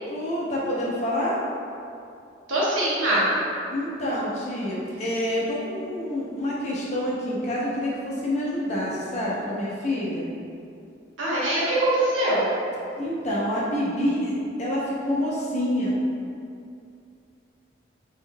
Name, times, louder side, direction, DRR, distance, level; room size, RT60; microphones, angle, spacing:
voice 1, 0.1-1.4 3.7-10.3 13.0-15.9, left 1 dB, 35° left, -6 dB, 0.6 m, -27 dB
voice 2, 2.5-3.2 11.2-12.5, right 1 dB, 90° right, -8 dB, 1.0 m, -22 dB
3.6 x 3.5 x 2.2 m, 2.5 s
head